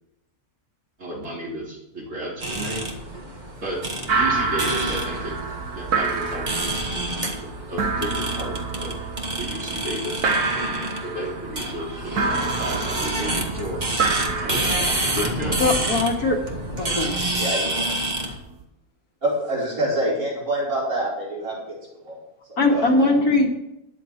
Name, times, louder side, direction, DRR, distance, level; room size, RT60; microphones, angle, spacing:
voice 1, 1.0-2.9 3.6-5.4 5.7-7.1 7.4-9.1 9.3-13.8 14.4-14.7 15.1-15.6, right 1 dB, 55° right, -3 dB, 3.7 m, -33 dB
sound 1, 2.4-18.4, right 1 dB, 30° right, 1.8 m, -28 dB
sound 2, 4.1-18.6, right 4 dB, 90° right, 1.8 m, -28 dB
voice 2, 15.6-16.4 16.8-17.2 22.6-23.5, left 2 dB, 85° left, 1 dB, 2.6 m, -20 dB
voice 3, 17.4-17.8 19.2-22.2 22.5-23.1, right 1 dB, 70° right, -6 dB, 5.6 m, -26 dB
13.0 x 10.5 x 4.5 m, 0.88 s
omnidirectional pair, 1.6 m